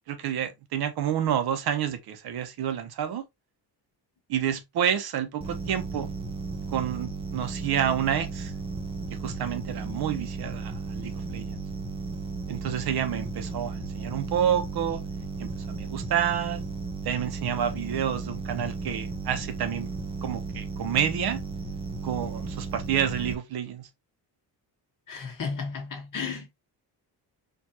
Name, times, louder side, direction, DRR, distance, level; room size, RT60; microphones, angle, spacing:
voice 1, 0.1-3.2 4.3-6.1 6.7-8.5 9.2-11.6 12.5-15.0 15.4-16.6 17.0-19.9 20.2-21.4 22.0-23.9, right 9 dB, 65° right, 0.8 m, -29 dB
sound 1, 5.4-23.3, right 4 dB, 15° right, 0.5 m, -35 dB
voice 2, 25.1-26.5, left 5 dB, 50° left, 1.4 m, -33 dB
4.5 x 2.5 x 2.8 m
cardioid pair, 150°, 41 cm